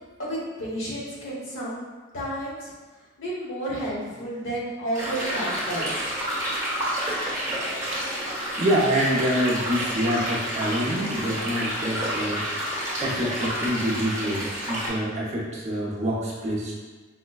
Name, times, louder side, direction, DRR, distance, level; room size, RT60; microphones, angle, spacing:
voice 1, 0.0-1.8 2.1-2.7 3.2-6.1, right 1 dB, 60° left, -6 dB, 1.1 m, -31 dB
sound 1, 4.9-14.9, equal, 15° right, 1.0 m, -29 dB
voice 2, 8.6-16.8, equal, 35° right, -5 dB, 0.6 m, -26 dB
4.9 x 2.1 x 2.3 m, 1.3 s
head